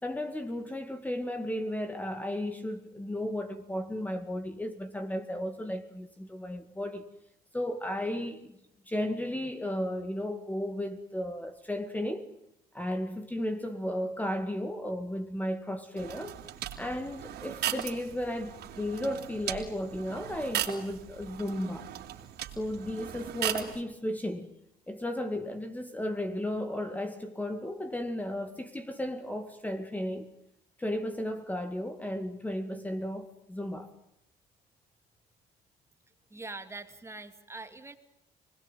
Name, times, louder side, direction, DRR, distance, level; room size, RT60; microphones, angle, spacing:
voice 1, 0.0-7.0 7.5-8.5 8.9-12.3 12.7-16.4 16.8-21.9 22.6-24.5 24.9-30.3 30.8-33.9, left 1 dB, 10° left, 2.1 m, -34 dB
sound 1, 16.0-23.8, right 12 dB, 75° right, 3.6 m, -38 dB
voice 2, 36.3-38.0, right 3 dB, 15° right, 2.6 m, -43 dB
29.5 x 21.0 x 9.2 m
cardioid pair, 110°, 17 cm